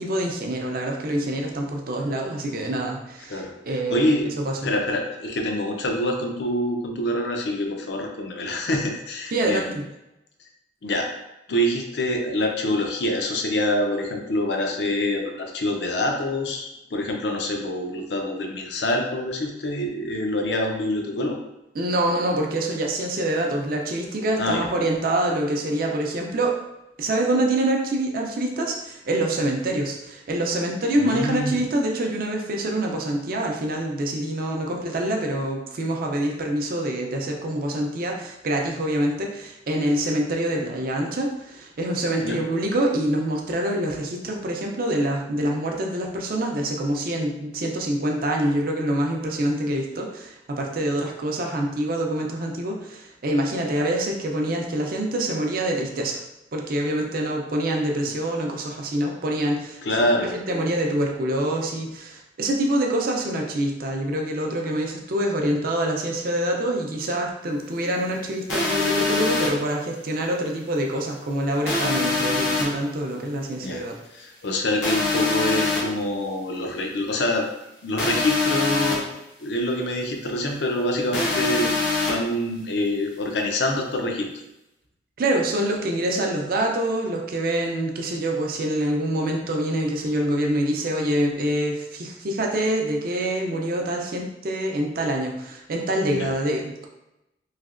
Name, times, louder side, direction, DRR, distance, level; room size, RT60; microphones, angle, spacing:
voice 1, 0.0-4.7 9.3-9.9 21.7-26.6 27.0-56.2 56.5-59.8 60.2-74.0 85.2-96.9, right 1 dB, 50° right, 1 dB, 0.5 m, -25 dB
voice 2, 3.9-4.3 4.6-9.8 10.8-11.1 11.5-21.4 24.4-24.7 31.0-31.6 42.2-42.4 59.8-60.3 73.6-73.8 74.1-77.5 77.8-79.0 79.4-81.7 82.0-84.3 96.1-96.3, left 1 dB, 65° left, 2 dB, 0.5 m, -25 dB
sound 1, 68.5-69.5 71.7-72.6 74.8-75.8 78.0-79.0 81.1-82.1, left 3 dB, 85° left, 1.0 m, -23 dB
3.2 x 2.7 x 2.5 m, 0.92 s
head